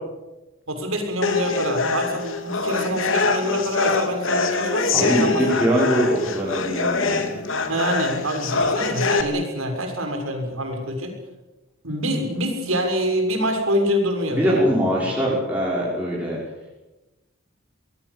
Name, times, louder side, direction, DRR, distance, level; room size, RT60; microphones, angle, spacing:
voice 1, 0.7-5.5 7.7-11.2 11.8-15.1, equal, 80° right, 4 dB, 7.0 m, -26 dB
sound 1, 1.2-9.2, left 3 dB, 70° left, 3.0 m, -24 dB
voice 2, 4.9-7.3 14.3-16.4, equal, 5° right, -6 dB, 6.0 m, -22 dB
23.5 x 21.5 x 8.5 m, 1.0 s
head